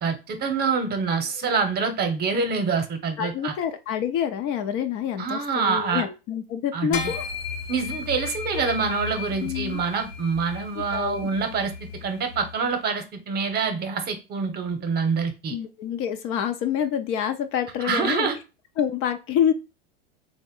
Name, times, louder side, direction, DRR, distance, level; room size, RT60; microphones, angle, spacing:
voice 1, 0.0-3.5 5.2-6.0 6.7-7.0 7.7-11.7 12.0-15.5 17.8-18.3, right 5 dB, 30° right, 0.9 m, -26 dB
voice 2, 3.2-7.3 8.5-8.7 9.3-9.8 10.7-11.3 15.5-18.3 18.8-19.5, left 9 dB, 45° left, 0.6 m, -27 dB
sound 1, 6.9-12.5, left 6 dB, 65° left, 0.9 m, -35 dB
3.8 x 2.2 x 3.6 m
hypercardioid pair, 100°, 30 cm